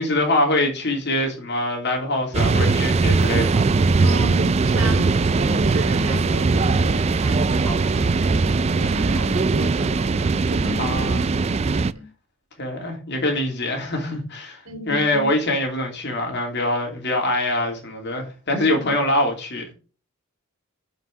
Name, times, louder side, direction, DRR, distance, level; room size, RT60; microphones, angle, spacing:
voice 1, 0.0-3.7 10.8-11.3 12.6-19.6, left 1 dB, 50° left, 3.0 m, -24 dB
sound 1, 2.3-11.9, right 4 dB, 30° right, 0.3 m, -20 dB
voice 2, 4.0-11.2 11.9-12.1 14.6-15.3 18.8-18.9, equal, 85° right, 2.8 m, -33 dB
7.4 x 5.6 x 6.4 m
head